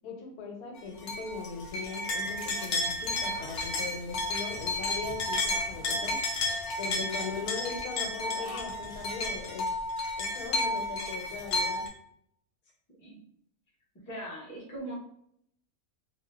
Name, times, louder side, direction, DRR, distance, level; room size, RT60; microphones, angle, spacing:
voice 1, 0.0-6.1 6.8-9.7 10.2-11.8, left 5 dB, 90° left, 2 dB, 1.1 m, -39 dB
sound 1, 1.1-11.9, left 2 dB, 65° left, 0.6 m, -32 dB
voice 2, 14.1-14.9, right 1 dB, 25° left, -5 dB, 0.4 m, -40 dB
2.6 x 2.1 x 2.2 m, 0.70 s
omnidirectional pair, 1.5 m